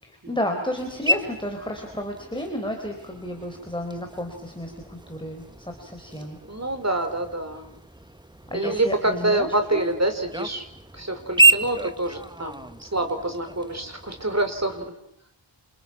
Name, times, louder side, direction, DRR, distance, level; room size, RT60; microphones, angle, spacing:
voice 1, 0.0-6.4 8.5-9.8, left 1 dB, 10° left, 4 dB, 4.2 m, -32 dB
sound 1, 0.8-14.9, right 2 dB, 10° right, 1.4 m, -29 dB
voice 2, 6.5-7.7 8.5-10.7 10.9-14.9, right 2 dB, 35° right, 6 dB, 4.6 m, -26 dB
29.5 x 28.0 x 6.1 m, 0.77 s
wide cardioid pair, 65°, 47 cm